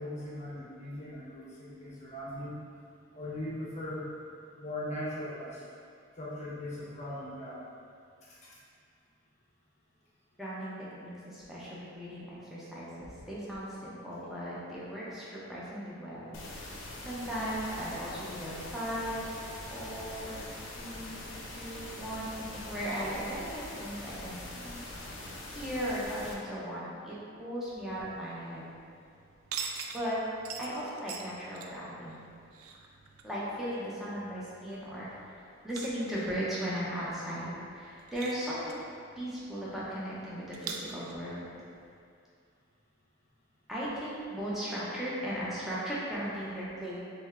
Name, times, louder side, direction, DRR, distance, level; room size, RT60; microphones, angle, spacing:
voice 1, 0.0-2.5 3.1-4.1 4.6-5.6 6.2-7.7 8.4-8.6, left 1 dB, 35° left, -7 dB, 0.8 m, -39 dB
voice 2, 10.4-16.6 17.0-19.3 19.7-20.5 20.8-24.8 25.5-28.7 29.9-30.2 30.6-32.3 33.2-35.3 35.6-38.8 39.1-41.4 43.7-47.0, equal, ahead, -9 dB, 0.8 m, -37 dB
sound 1, 16.3-26.3, left 2 dB, 65° left, 0.6 m, -43 dB
sound 2, 27.6-42.0, right 5 dB, 90° right, 0.4 m, -46 dB
3.4 x 3.2 x 3.6 m, 2.4 s
head